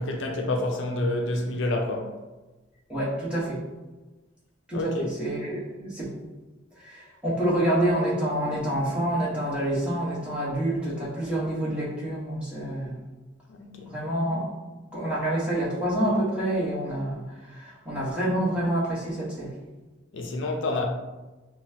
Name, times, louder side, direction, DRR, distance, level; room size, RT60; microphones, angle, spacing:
voice 1, 0.0-2.2 4.7-5.1 13.5-13.9 20.1-20.8, left 2 dB, 65° left, 0.5 m, -28 dB
voice 2, 2.9-3.6 4.7-6.1 6.8-13.0 13.9-14.5 14.9-17.2 17.5-19.5, right 1 dB, 5° right, 1.3 m, -27 dB
5.6 x 2.2 x 2.8 m
head